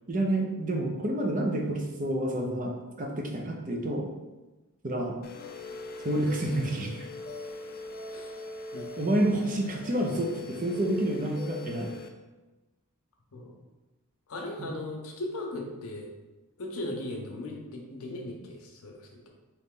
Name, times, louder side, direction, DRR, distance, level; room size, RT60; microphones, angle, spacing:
voice 1, 0.1-4.1 4.8-5.2 6.0-7.1 9.0-11.9 14.6-14.7, right 1 dB, 35° right, 1 dB, 0.6 m, -29 dB
sound 1, 5.2-12.1, left 2 dB, 40° left, 0.4 m, -41 dB
voice 2, 14.3-16.1 16.6-19.3, left 1 dB, 70° left, 1 dB, 0.7 m, -38 dB
3.9 x 3.1 x 3.7 m, 1.1 s
head